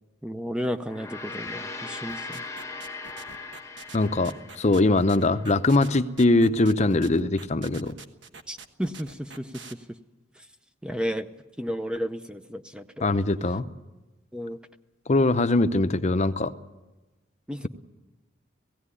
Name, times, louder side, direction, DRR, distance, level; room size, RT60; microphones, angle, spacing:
voice 1, 0.2-2.4 8.5-9.8 10.4-10.5 10.8-11.3 11.6-13.1 14.3-14.6 17.5-17.7, equal, 5° right, 9 dB, 0.6 m, -33 dB
Gong, 0.8-5.4, left 3 dB, 15° left, 1.1 m, -39 dB
sound 1, 2.1-9.7, right 5 dB, 65° right, 1.3 m, -45 dB
voice 2, 3.9-7.9 13.0-13.7 15.1-16.5, left 2 dB, 35° left, 11 dB, 0.7 m, -22 dB
17.0 x 16.5 x 9.8 m, 1.1 s
head